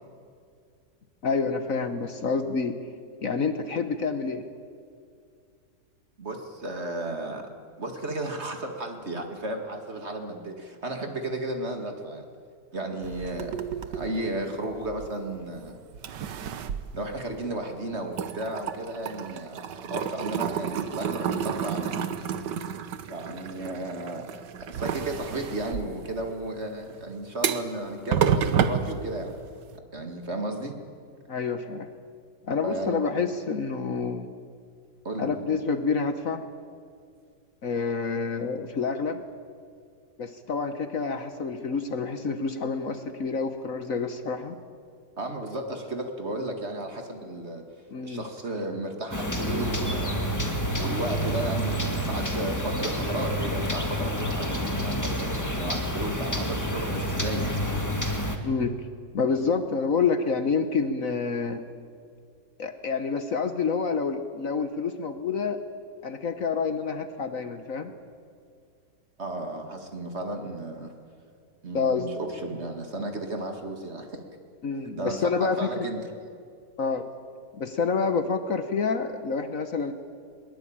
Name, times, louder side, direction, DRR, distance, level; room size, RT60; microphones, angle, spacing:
voice 1, 1.2-2.7 3.2-4.5 31.3-31.9 32.5-34.3 35.2-36.4 37.6-39.2 40.2-44.6 47.9-48.2 58.4-58.7 59.1-61.6 62.6-65.6 66.0-67.9 71.7-72.1 74.6-75.9 76.8-77.0 77.6-79.9, left 5 dB, 55° left, 9 dB, 1.4 m, -28 dB
voice 2, 6.2-7.4 7.8-12.2 12.7-13.6 13.9-15.8 16.9-22.0 23.1-24.3 24.7-29.3 29.9-30.8 32.6-33.2 35.0-35.4 45.2-47.6 48.0-50.1 50.8-57.5 69.2-70.9 71.6-74.2 75.0-76.0, right 1 dB, 40° right, 4 dB, 2.4 m, -34 dB
sound 1, 13.0-15.5 15.9-17.8 18.1-29.7, right 8 dB, 75° right, 1.7 m, -31 dB
sound 2, 49.1-58.4, equal, 10° left, 1.8 m, -28 dB
21.5 x 20.5 x 8.8 m, 2.2 s
omnidirectional pair, 1.9 m